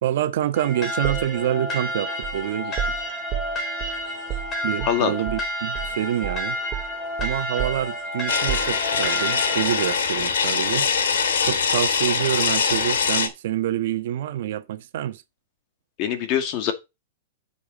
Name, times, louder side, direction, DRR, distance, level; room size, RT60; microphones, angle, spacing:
voice 1, 0.0-2.8 4.6-6.6 7.2-10.9 11.4-15.2, right 12 dB, 60° right, 1.2 m, -27 dB
sound 1, 0.5-10.0, left 1 dB, 20° left, 3.9 m, -30 dB
sound 2, 1.0-5.5 5.7-6.0 6.2-9.2, right 11 dB, 25° right, 2.5 m, -33 dB
sound 3, 8.3-13.3, left 6 dB, 85° left, 2.6 m, -23 dB
voice 2, 16.0-16.7, left 9 dB, 35° left, 2.2 m, -23 dB
10.5 x 6.8 x 4.2 m
hypercardioid pair, 155°, 0 cm